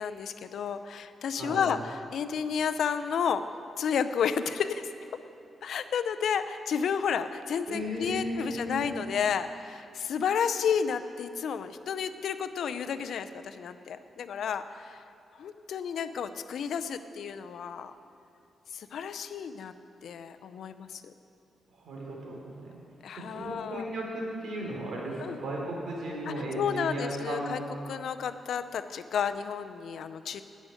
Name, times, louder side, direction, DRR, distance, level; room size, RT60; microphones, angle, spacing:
voice 1, 0.0-3.4 3.8-4.8 5.6-15.0 15.3-17.9 18.7-19.7 20.0-21.1 23.0-23.9 25.2-25.4 26.3-27.6 27.9-30.4, left 7 dB, 75° left, 11 dB, 0.5 m, -31 dB
voice 2, 1.4-1.7 7.7-8.9 21.7-22.8 23.2-27.5, right 1 dB, 75° right, -2 dB, 3.1 m, -35 dB
10.0 x 6.4 x 8.9 m, 2.7 s
cardioid pair, 95°, 0 cm